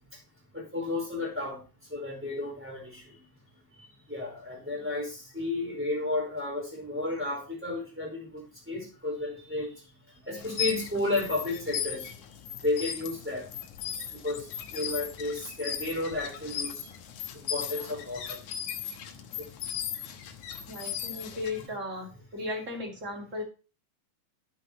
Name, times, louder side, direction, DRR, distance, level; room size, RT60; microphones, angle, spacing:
voice 1, 0.5-1.6 1.9-3.0 4.1-9.7 10.2-12.1 12.6-13.4 14.2-14.5 14.7-16.9 17.5-18.4 19.4-19.5, left 2 dB, 5° right, -1 dB, 4.5 m, -32 dB
sound 1, 10.4-21.7, left 8 dB, 65° left, 2.3 m, -37 dB
voice 2, 20.7-23.4, left 2 dB, 25° right, 2 dB, 2.1 m, -36 dB
12.0 x 9.3 x 2.9 m, 0.32 s
omnidirectional pair, 4.0 m